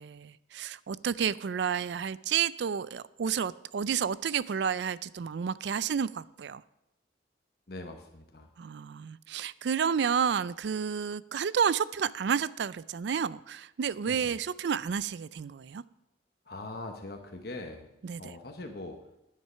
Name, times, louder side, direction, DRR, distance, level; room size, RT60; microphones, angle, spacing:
voice 1, 0.0-6.6 8.6-15.8 18.0-18.3, right 7 dB, 70° right, 19 dB, 0.4 m, -31 dB
voice 2, 7.7-8.5 14.1-14.4 16.4-17.9 18.2-19.0, left 2 dB, 55° left, 3 dB, 1.1 m, -42 dB
9.9 x 9.8 x 5.6 m, 0.89 s
head